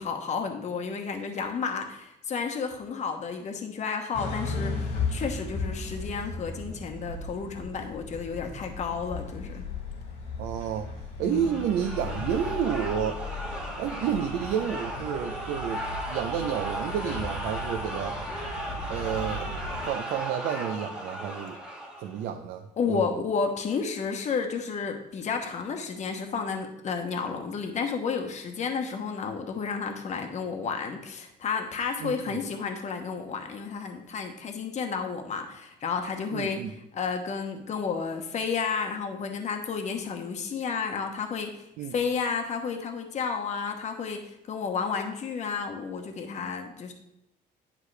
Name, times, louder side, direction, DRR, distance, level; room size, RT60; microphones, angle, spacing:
voice 1, 0.0-9.6 11.2-11.6 22.8-41.6 41.9-46.9, left 5 dB, 45° left, 4 dB, 1.0 m, -32 dB
sound 1, 4.1-19.9, left 3 dB, 85° left, 2.2 m, -36 dB
voice 2, 10.4-13.2 13.8-18.2 18.9-19.5 19.9-21.6 22.0-23.2 32.0-32.4 36.3-36.7 41.8-41.9, right 8 dB, 80° right, 5 dB, 0.6 m, -30 dB
sound 2, 11.3-22.3, right 1 dB, 5° right, 1.2 m, -36 dB
10.0 x 4.9 x 3.3 m, 0.84 s
cardioid pair, 110°, 17 cm